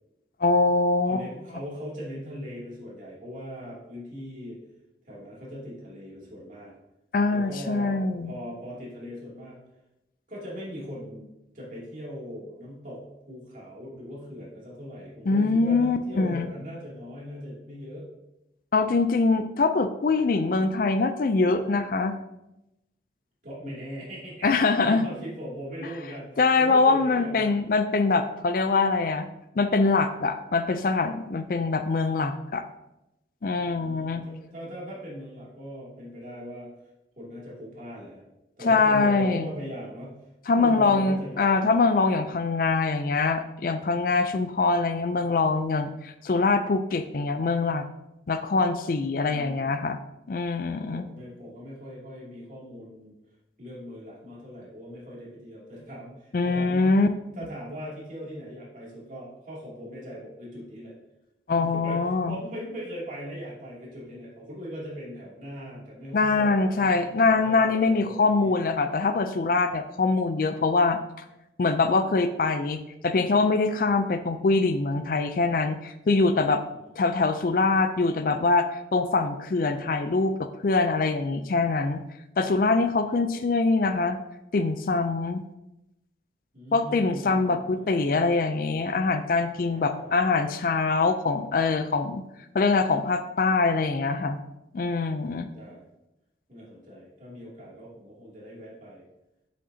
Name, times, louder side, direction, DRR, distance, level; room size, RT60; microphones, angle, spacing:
voice 1, 0.4-1.2 7.1-8.3 15.3-16.5 18.7-22.1 24.4-25.0 26.4-29.3 29.6-32.6 33.4-34.2 38.6-39.5 40.5-47.9 48.3-50.0 50.3-51.0 56.3-57.1 61.5-62.4 66.1-71.2 71.6-76.6 77.0-82.0 82.4-84.2 84.5-85.4 86.7-92.2 92.5-94.4 94.7-95.5, left 3 dB, 50° left, 10 dB, 0.4 m, -23 dB
voice 2, 1.1-4.6 5.1-6.7 7.3-9.6 10.3-11.3 11.5-13.0 13.3-18.1 23.4-24.5 24.8-27.5 33.5-36.7 37.2-38.2 38.6-40.2 40.5-41.7 48.9-49.8 50.8-53.2 53.6-57.0 57.3-60.9 61.5-67.0 67.3-68.5 76.7-76.9 82.8-83.3 86.5-88.4 89.7-90.3 95.5-95.8 96.5-99.0, equal, 45° right, -6 dB, 2.5 m, -40 dB
7.7 x 6.5 x 2.7 m, 0.90 s
head